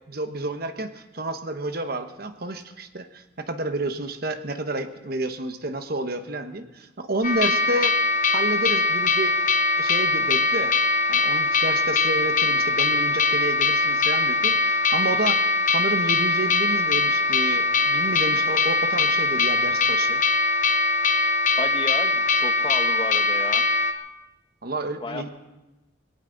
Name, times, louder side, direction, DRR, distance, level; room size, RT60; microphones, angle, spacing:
voice 1, 0.1-8.0 8.3-9.3 9.8-10.8 11.1-20.2 24.6-25.3, right 2 dB, 55° right, 8 dB, 1.1 m, -30 dB
sound 1, 7.2-23.9, left 3 dB, 45° left, 1.0 m, -22 dB
voice 2, 21.6-23.6 25.0-25.3, left 2 dB, 25° left, 7 dB, 1.1 m, -32 dB
20.5 x 17.0 x 3.9 m, 1.0 s
head